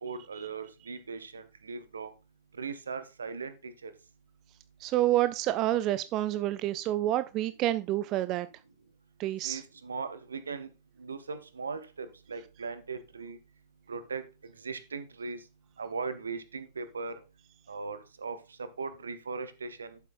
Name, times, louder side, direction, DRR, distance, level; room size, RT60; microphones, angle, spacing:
voice 1, 0.0-2.1 2.6-3.9 9.4-10.7 11.0-13.4 13.9-14.2 14.6-15.4 15.8-17.2 17.7-20.0, right 4 dB, 75° right, 0.9 m, -39 dB
voice 2, 4.8-8.5 9.2-9.6, right 14 dB, 40° right, 0.4 m, -28 dB
11.5 x 7.4 x 2.5 m
figure-of-eight pair, 90°, 0 cm